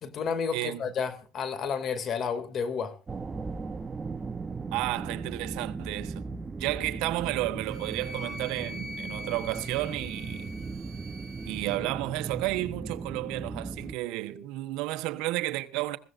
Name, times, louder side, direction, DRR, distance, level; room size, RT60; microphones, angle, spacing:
voice 1, 0.0-3.0, left 6 dB, 50° left, 2.5 m, -31 dB
sound 1, 3.1-14.0, right 4 dB, 25° right, 0.8 m, -37 dB
voice 2, 4.7-6.3 6.6-10.5 11.4-16.0, right 17 dB, 75° right, 1.1 m, -32 dB
Wind instrument woodwind instrument, 7.6-11.8, left 1 dB, 50° right, 3.2 m, -44 dB
21.0 x 16.0 x 2.6 m
supercardioid pair, 90°, 0 cm